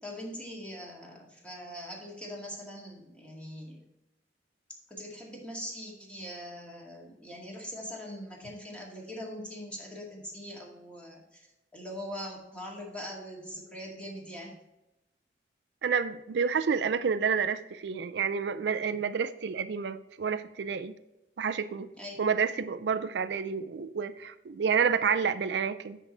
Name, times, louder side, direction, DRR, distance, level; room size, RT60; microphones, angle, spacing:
voice 1, 0.0-3.8 4.9-11.5 11.7-14.6 22.0-22.2, equal, 5° left, -3 dB, 2.1 m, -42 dB
voice 2, 15.8-20.9 21.4-21.9 22.2-26.0, right 6 dB, 70° right, 12 dB, 0.4 m, -29 dB
9.8 x 4.6 x 4.3 m, 0.93 s
head